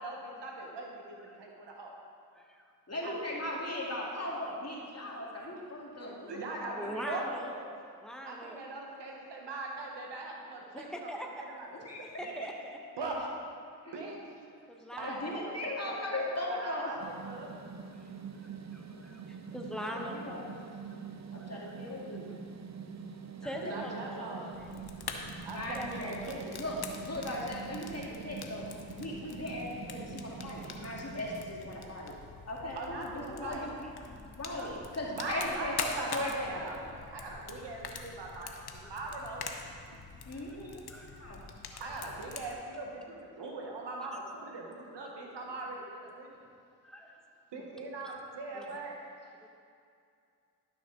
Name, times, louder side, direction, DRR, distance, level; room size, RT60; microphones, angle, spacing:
voice 1, 0.0-1.9 3.0-3.3 6.3-7.7 8.2-11.7 13.0-13.2 13.9-14.2 15.0-17.5 23.6-24.6 25.4-26.0 26.3-26.6 30.2-30.3 30.7-30.8 32.5-33.8 35.1-39.4 40.6-40.7 41.8-46.4 47.5-49.0, right 2 dB, 80° right, -1 dB, 1.4 m, -41 dB
voice 2, 2.3-2.7 6.8-7.5 8.0-8.6 10.7-11.5 12.2-12.8 14.7-15.6 18.0-18.1 18.4-20.6 21.3-21.5 22.7-23.0 23.4-24.7 25.6-26.3 26.6-26.9 28.1-28.2 30.8-31.0 34.0-34.7 38.3-38.4 38.8-38.9 39.9-40.0 40.3-41.3 41.7-41.8 43.4-43.5 44.1-44.2 46.8-47.1 48.5-48.6 49.4-49.5, equal, ahead, 1 dB, 1.4 m, -43 dB
voice 3, 2.9-7.2 11.7-12.3 13.9-14.0 15.0-16.9 19.9-20.6 21.3-22.3 23.4-24.2 25.5-26.2 26.6-28.7 29.0-32.1 32.5-33.7 34.4-36.5 40.2-40.8 41.2-41.4, left 1 dB, 35° left, -3 dB, 2.3 m, -38 dB
sound 1, 17.0-32.4, right 6 dB, 40° right, 0.8 m, -45 dB
Fire, 24.5-42.5, left 5 dB, 65° left, 0.9 m, -45 dB
12.0 x 6.0 x 4.0 m, 2.4 s
cardioid pair, 40°, 41 cm